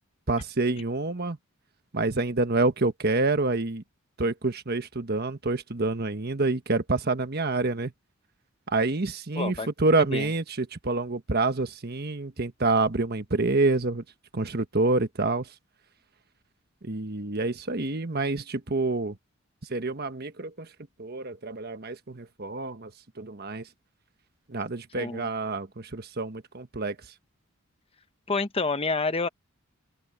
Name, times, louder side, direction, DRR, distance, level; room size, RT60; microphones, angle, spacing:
voice 1, 0.3-1.4 1.9-3.8 4.2-7.9 8.7-14.0 14.3-15.5 16.8-19.2 19.7-20.7 21.0-22.9 23.2-23.6 24.5-26.9, right 3 dB, 50° right, 1.3 m, -27 dB
voice 2, 9.3-9.7 10.1-10.3 25.0-25.3 28.3-29.3, left 3 dB, 30° left, 0.9 m, -28 dB
open air
head